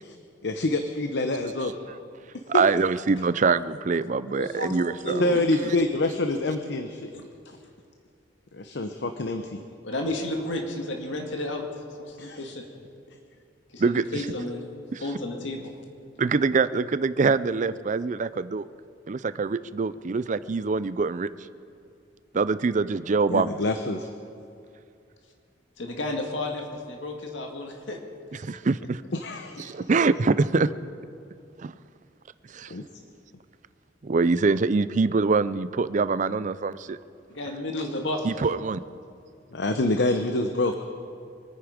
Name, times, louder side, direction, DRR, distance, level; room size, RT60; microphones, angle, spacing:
voice 1, 0.4-1.7 2.5-2.6 5.2-7.1 8.5-9.6 12.2-12.5 23.3-24.1 29.2-29.8 32.7-32.8 39.5-40.7, left 2 dB, 65° left, 6 dB, 0.8 m, -26 dB
voice 2, 2.5-5.2 5.6-5.7 13.8-14.3 14.9-15.0 16.2-18.7 19.1-21.3 22.3-23.6 28.4-29.0 29.6-30.7 31.6-31.7 32.5-32.7 34.0-37.0 38.2-38.8, right 4 dB, 40° right, 15 dB, 0.4 m, -24 dB
voice 3, 4.3-5.3 9.8-11.6 12.0-12.6 13.7-13.8 14.1-14.6 15.0-15.7 25.8-28.0 37.3-38.3, left 1 dB, 85° left, 2 dB, 1.9 m, -32 dB
25.5 x 9.7 x 5.1 m, 2.5 s
head